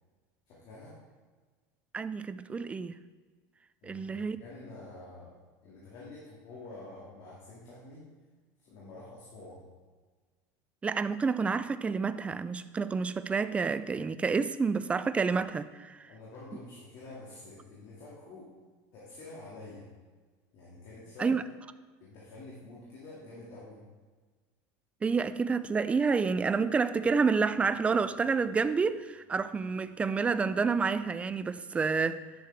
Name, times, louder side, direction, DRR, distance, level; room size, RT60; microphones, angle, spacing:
voice 1, 0.5-1.0 3.8-5.3 5.6-8.1 8.6-9.6 16.1-18.5 18.9-19.9 20.5-21.4 22.0-23.8, left 2 dB, 55° left, -6 dB, 2.2 m, -48 dB
voice 2, 1.9-2.9 3.8-4.4 10.8-16.1 21.2-21.4 25.0-32.2, right 5 dB, 15° right, 13 dB, 0.3 m, -29 dB
10.5 x 6.6 x 3.4 m, 1.4 s
supercardioid pair, 135°, 9 cm